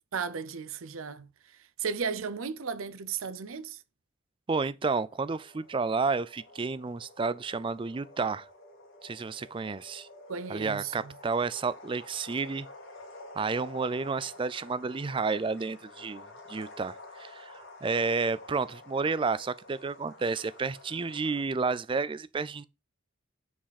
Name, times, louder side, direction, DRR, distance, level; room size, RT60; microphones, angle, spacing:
voice 1, 0.1-3.8 10.3-11.1, right 6 dB, 75° right, 0.6 m, -35 dB
voice 2, 4.5-8.5 9.0-10.1 10.5-12.7 13.3-22.7, right 4 dB, 25° right, 0.3 m, -31 dB
sound 1, 5.1-21.4, left 2 dB, 65° left, 2.5 m, -50 dB
5.9 x 4.9 x 4.1 m
head